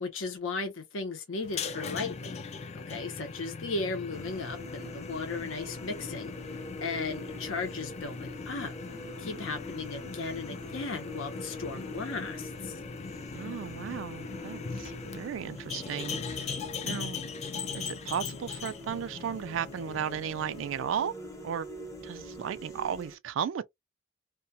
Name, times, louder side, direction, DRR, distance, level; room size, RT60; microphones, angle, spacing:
voice 1, 0.0-2.4 2.7-6.3 6.8-8.7 9.2-12.7, left 3 dB, 80° left, 0.7 m, -36 dB
sound 1, 1.4-20.8, left 5 dB, 35° left, 0.3 m, -40 dB
sound 2, 4.1-23.1, left 1 dB, 15° left, 0.7 m, -45 dB
voice 2, 13.3-16.5 16.8-17.2 17.7-21.1 21.4-21.7 22.0-23.7, right 8 dB, 70° right, 0.3 m, -35 dB
2.3 x 2.2 x 2.7 m
head